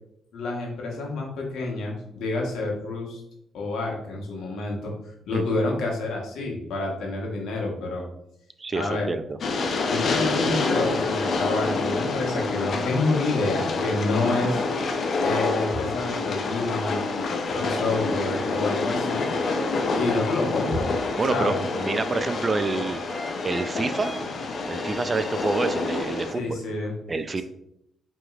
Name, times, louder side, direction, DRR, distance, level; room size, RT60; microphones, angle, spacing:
voice 1, 0.3-3.2 3.5-8.1 8.7-9.1 9.9-14.6 15.2-17.0 17.5-19.3 19.9-20.9 21.3-21.6 26.3-26.9, left 2 dB, 80° left, -1 dB, 1.0 m, -28 dB
voice 2, 8.6-9.4 17.7-17.9 21.2-23.0 23.4-24.1 24.7-26.6 27.1-27.4, right 3 dB, 35° right, 11 dB, 0.3 m, -27 dB
Train, 9.4-26.3, left 3 dB, 60° left, 0.5 m, -27 dB
sound 1, 18.1-26.3, left 1 dB, 10° left, 0.6 m, -41 dB
4.9 x 3.0 x 2.4 m, 0.79 s
supercardioid pair, 65°, 0 cm